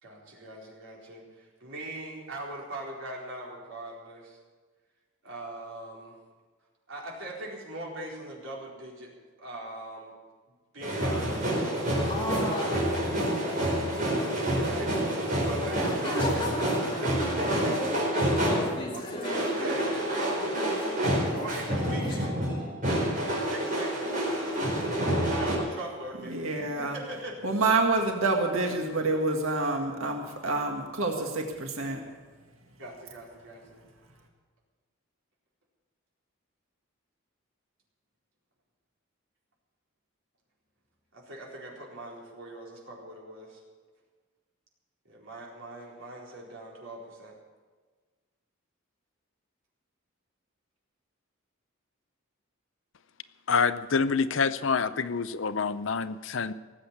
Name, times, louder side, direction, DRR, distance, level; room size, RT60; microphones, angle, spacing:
voice 1, 0.0-4.4 5.2-6.2 6.9-9.1 9.4-10.1 10.7-13.6 14.6-14.9 15.4-18.1 18.9-20.0 21.3-22.5 23.3-26.4 26.8-27.3 32.8-33.8 41.1-43.6 45.0-47.4, right 1 dB, 65° right, -3 dB, 4.3 m, -41 dB
sound 1, 10.8-18.9 19.2-25.6, right 1 dB, 40° right, 4.8 m, -28 dB
sound 2, 12.1-14.6 15.1-15.3 15.6-22.3, left 1 dB, 25° left, 2.3 m, -37 dB
voice 2, 26.2-27.0 27.4-32.0, right 3 dB, 90° right, 2 dB, 1.9 m, -28 dB
voice 3, 53.5-56.5, left 5 dB, 65° left, 14 dB, 0.6 m, -27 dB
19.0 x 8.0 x 8.5 m, 1.4 s
head